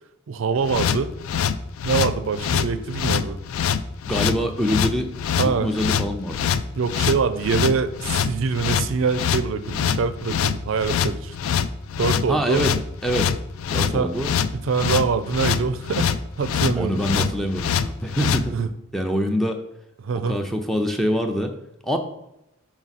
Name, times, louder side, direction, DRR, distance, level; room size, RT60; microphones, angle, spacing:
voice 1, 0.3-1.1 1.8-3.4 5.4-5.7 6.8-11.3 12.0-12.6 13.9-14.1 14.5-16.1 16.4-17.0 18.5-18.7 20.0-20.4, right 5 dB, 65° right, 11 dB, 0.4 m, -24 dB
sound 1, 0.6-18.4, left 8 dB, 80° left, 0.3 m, -24 dB
voice 2, 4.1-6.5 12.3-12.7 13.0-13.3 13.7-14.3 16.7-18.6 18.9-19.6 20.1-21.5 21.8-22.0, equal, ahead, 4 dB, 0.5 m, -25 dB
6.0 x 4.3 x 4.1 m, 0.87 s
head